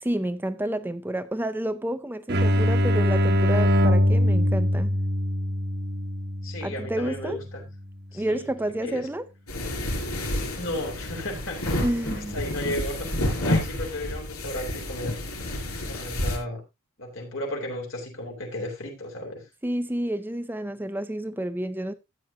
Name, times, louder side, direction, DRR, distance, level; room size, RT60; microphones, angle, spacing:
voice 1, 0.0-4.9 6.6-7.4 8.1-9.2 11.8-12.4 19.6-21.9, right 1 dB, 10° right, 0.5 m, -29 dB
sound 1, 2.3-7.8, equal, 50° right, 1.3 m, -23 dB
voice 2, 6.4-7.6 8.1-8.5 8.8-9.0 10.6-11.7 12.2-13.1 13.5-15.2 15.8-16.6 17.0-19.5, left 1 dB, 60° left, 3.7 m, -34 dB
sound 2, 9.5-16.4, left 1 dB, 80° left, 4.8 m, -29 dB
13.5 x 9.0 x 2.8 m
head